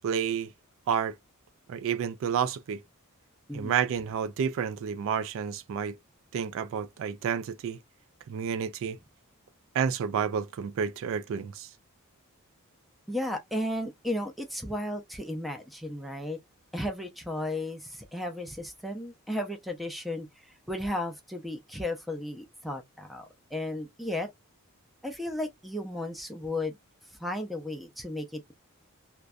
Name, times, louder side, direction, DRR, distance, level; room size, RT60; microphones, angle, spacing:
voice 1, 0.0-0.5 0.9-1.2 1.7-2.8 3.5-6.0 6.3-7.8 8.3-9.0 9.7-11.7, right 7 dB, 60° right, 0.3 m, -30 dB
voice 2, 3.5-3.8 13.1-16.4 16.7-24.3 25.0-26.8 27.2-28.5, left 1 dB, ahead, 0.5 m, -34 dB
2.5 x 2.1 x 2.2 m
head